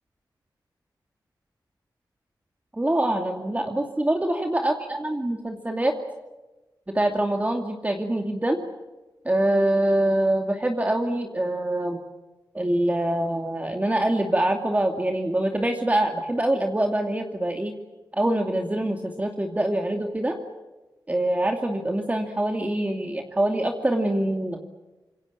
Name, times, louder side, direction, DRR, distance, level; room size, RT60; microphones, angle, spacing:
voice 1, 2.7-6.0 6.9-8.6 9.2-12.0 12.5-17.7 18.1-20.3 21.1-24.6, right 1 dB, 20° right, 3 dB, 2.5 m, -24 dB
26.5 x 23.0 x 8.6 m, 1.1 s
cardioid pair, 65°, 8 cm